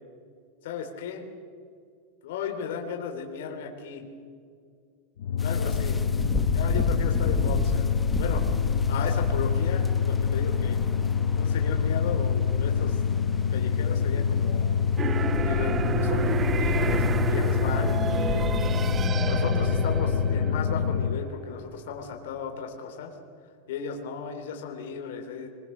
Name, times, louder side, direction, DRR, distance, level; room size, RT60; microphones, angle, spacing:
voice 1, 0.6-1.3 2.2-4.0 5.4-6.0 6.5-7.9 8.2-8.4 8.9-10.8 11.4-13.0 13.5-14.7 15.4-18.5 19.2-23.1 23.7-25.5, left 6 dB, 65° left, 3 dB, 3.4 m, -35 dB
sound 1, 5.2-21.3, left 7 dB, 90° left, 0.7 m, -25 dB
sound 2, 5.4-19.1, left 2 dB, 10° left, 1.1 m, -35 dB
sound 3, 15.0-21.8, right 8 dB, 20° right, 0.5 m, -31 dB
25.5 x 22.0 x 6.6 m, 2.2 s
supercardioid pair, 165°, 0 cm